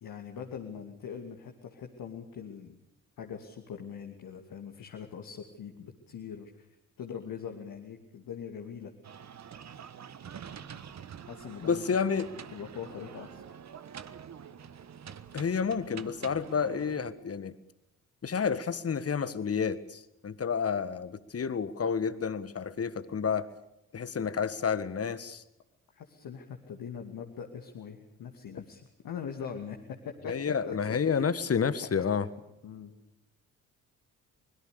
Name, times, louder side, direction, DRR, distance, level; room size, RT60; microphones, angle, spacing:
voice 1, 0.0-2.8 3.2-6.7 7.0-8.9 11.2-12.1 12.5-13.4 25.9-29.8 30.0-31.3 32.0-32.1 32.6-32.9, left 7 dB, 50° left, 3 dB, 2.6 m, -42 dB
sound 1, 9.0-17.1, right 8 dB, 40° right, 1.5 m, -46 dB
voice 2, 11.6-12.3 15.3-17.6 18.2-23.5 23.9-25.4 30.3-32.2, left 6 dB, 35° left, 15 dB, 1.6 m, -30 dB
25.0 x 21.5 x 6.7 m, 0.88 s
figure-of-eight pair, 45°, 42 cm